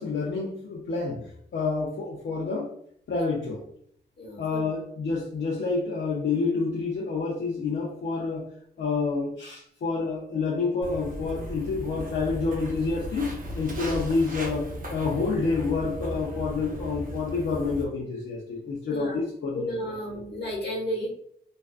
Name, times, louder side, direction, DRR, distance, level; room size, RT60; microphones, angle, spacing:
voice 1, 0.0-2.7 3.1-3.6 4.4-8.5 8.8-20.2, left 4 dB, 90° left, -3 dB, 0.5 m, -28 dB
voice 2, 4.2-4.7 18.9-19.2 19.5-21.1, equal, 65° left, -3 dB, 1.2 m, -32 dB
Walk footsteps, 10.8-17.8, equal, 50° right, 0.6 m, -36 dB
2.4 x 2.2 x 2.4 m, 0.65 s
cardioid pair, 65°, 19 cm